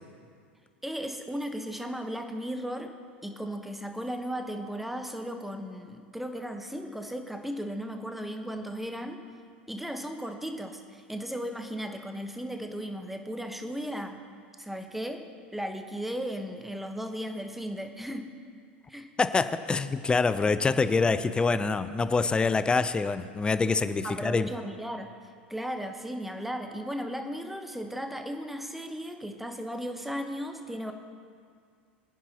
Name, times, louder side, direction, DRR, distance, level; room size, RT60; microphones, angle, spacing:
voice 1, 0.8-2.9 3.2-9.2 9.7-14.2 14.6-15.2 15.5-18.3 18.9-19.1 24.0-25.1 25.5-30.9, equal, 5° right, 5 dB, 1.2 m, -36 dB
voice 2, 19.2-24.5, left 4 dB, 15° left, 12 dB, 0.6 m, -25 dB
23.0 x 10.0 x 3.0 m, 2.2 s
figure-of-eight pair, 85°, 6 cm